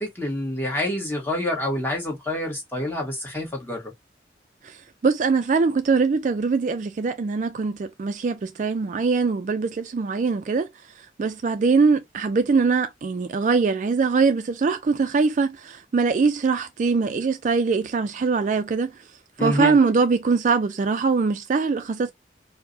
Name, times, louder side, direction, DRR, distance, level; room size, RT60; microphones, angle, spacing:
voice 1, 0.0-3.9 19.4-19.8, left 1 dB, 10° left, 1.2 m, -27 dB
voice 2, 5.0-10.7 11.2-18.9 19.4-22.1, right 4 dB, 40° right, 0.3 m, -22 dB
4.5 x 2.1 x 2.6 m
head